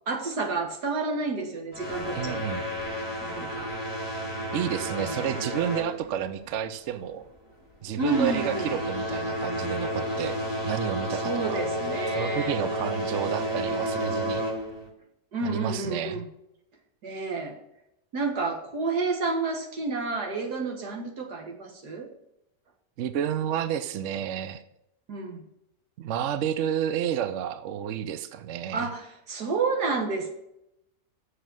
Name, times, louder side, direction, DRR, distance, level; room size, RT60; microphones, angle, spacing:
voice 1, 0.1-2.6 3.2-3.7 4.9-5.3 8.0-8.7 11.2-12.5 15.3-16.3 17.0-17.6 18.1-22.1 25.1-25.4 28.7-30.3, right 3 dB, 80° right, 1 dB, 2.1 m, -30 dB
sound 1, 1.7-6.6 6.9-7.2 7.8-14.9, equal, 15° right, 2.2 m, -31 dB
voice 2, 2.1-2.7 4.5-7.2 7.8-10.4 10.6-11.6 12.1-14.4 15.4-16.2 23.0-24.6 26.0-28.9, right 9 dB, 60° right, 11 dB, 0.8 m, -30 dB
7.3 x 6.5 x 6.2 m, 0.83 s
omnidirectional pair, 1.7 m